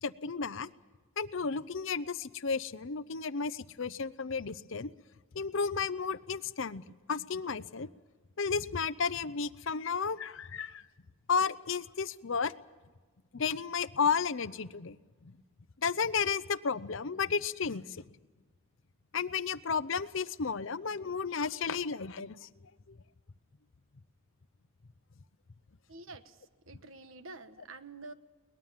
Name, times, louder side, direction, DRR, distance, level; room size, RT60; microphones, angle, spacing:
voice 1, 0.0-0.7 1.2-4.9 5.3-6.8 7.1-7.9 8.4-10.8 11.3-12.5 13.3-15.0 15.2-15.3 15.8-18.0 19.1-22.5 22.9-23.0, left 5 dB, 60° left, 16 dB, 0.7 m, -33 dB
voice 2, 25.9-28.1, right 3 dB, 65° right, 11 dB, 1.2 m, -48 dB
22.5 x 20.0 x 7.4 m, 1.3 s
head